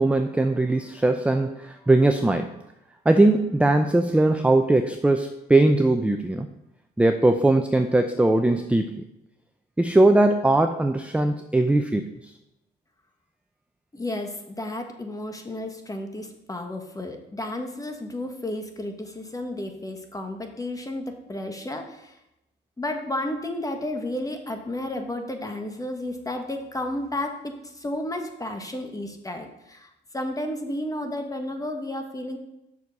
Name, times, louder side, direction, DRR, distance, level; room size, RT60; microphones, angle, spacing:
voice 1, 0.0-2.5 3.1-6.5 7.0-9.0 9.8-12.1, right 2 dB, 5° right, 6 dB, 0.5 m, -20 dB
voice 2, 13.9-22.2 22.8-32.4, left 1 dB, 15° left, 5 dB, 1.4 m, -32 dB
7.3 x 6.3 x 5.4 m, 0.88 s
cardioid pair, 90°, 20 cm